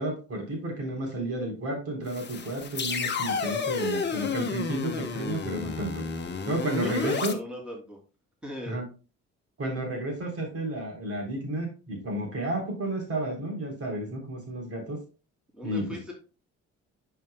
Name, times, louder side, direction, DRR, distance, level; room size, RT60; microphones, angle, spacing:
voice 1, 0.0-6.0 6.4-7.3 8.7-8.9 9.6-15.0 15.6-15.9, right 1 dB, 50° right, 0 dB, 3.5 m, -32 dB
sound 1, 2.1-7.3, left 5 dB, 35° left, 1.2 m, -31 dB
voice 2, 6.8-8.0 8.4-8.8 15.5-16.1, equal, 5° right, -2 dB, 2.9 m, -38 dB
10.5 x 5.0 x 2.3 m, 0.33 s
cardioid pair, 90°, 30 cm